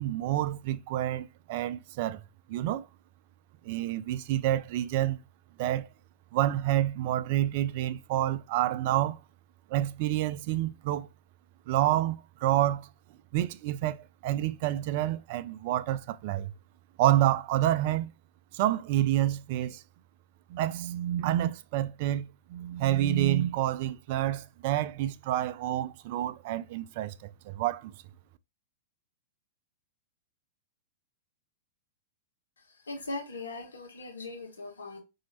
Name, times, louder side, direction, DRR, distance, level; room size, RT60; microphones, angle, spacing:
voice 1, 0.0-2.2 2.5-2.9 3.6-5.2 5.6-5.9 6.3-9.2 9.7-11.1 11.7-12.9 13.3-16.5 17.0-18.1 18.5-19.8 20.5-27.9, right 13 dB, 50° right, 0.3 m, -28 dB
voice 2, 32.9-35.0, left 2 dB, 75° left, 1.3 m, -39 dB
4.3 x 2.7 x 2.8 m
figure-of-eight pair, 100°, 0 cm